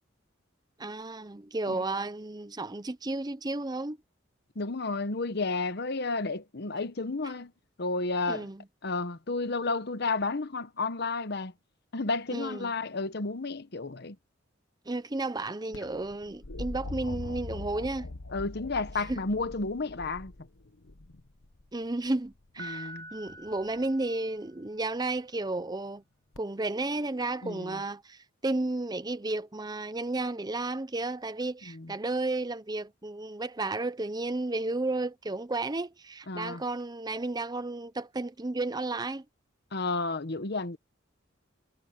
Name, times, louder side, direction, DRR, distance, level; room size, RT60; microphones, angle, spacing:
voice 1, 0.8-4.0 8.3-8.6 12.3-12.7 14.9-18.1 19.1-19.2 21.7-26.0 26.4-39.2, right 2 dB, 20° right, 0.7 m, -33 dB
voice 2, 4.6-7.5 7.8-8.5 8.8-11.5 11.9-14.2 18.3-20.3 22.6-23.1 27.4-27.8 31.7-31.9 36.3-36.6 39.7-40.8, left 3 dB, 55° left, 1.1 m, -32 dB
sound 1, 15.7-21.7 23.3-23.8 26.4-26.5, left 2 dB, 85° left, 1.2 m, -42 dB
Piano, 22.6-24.7, right 1 dB, 55° right, 2.0 m, -45 dB
head